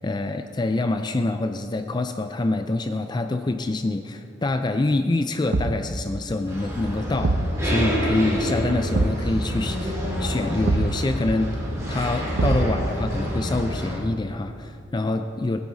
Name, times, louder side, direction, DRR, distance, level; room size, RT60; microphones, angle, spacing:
voice 1, 0.0-7.3 7.6-11.6 11.9-15.6, left 2 dB, 20° left, 7 dB, 0.4 m, -26 dB
Thump thud, 5.5-6.0 7.2-7.6 8.9-9.3 10.6-11.0 12.3-12.9, right 3 dB, 75° right, 0.7 m, -24 dB
sound 1, 6.5-14.0, equal, 15° right, 3.3 m, -28 dB
21.0 x 9.7 x 4.1 m, 2.5 s
head